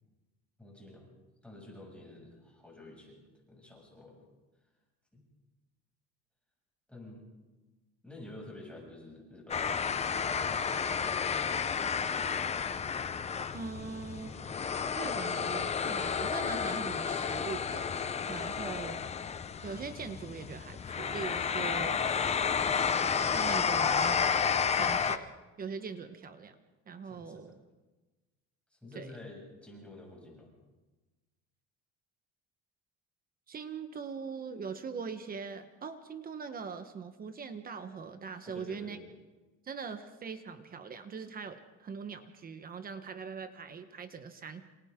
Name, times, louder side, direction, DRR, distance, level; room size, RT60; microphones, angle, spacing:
voice 1, 0.6-1.1 1.4-4.2 5.1-5.2 6.9-7.2 8.0-10.8 27.0-27.4 28.7-30.5 38.4-39.0, left 2 dB, 5° left, -3 dB, 6.9 m, -50 dB
sound 1, 9.5-25.2, left 6 dB, 20° left, 0.7 m, -31 dB
voice 2, 13.5-14.7 15.0-17.9 18.3-19.0 19.6-22.0 23.3-24.4 24.7-25.3 25.6-26.6 26.9-27.6 28.9-29.1 33.5-39.0 39.6-44.7, right 5 dB, 30° right, 9 dB, 1.2 m, -41 dB
28.0 x 27.5 x 3.8 m, 1.2 s
cardioid pair, 140°, 29 cm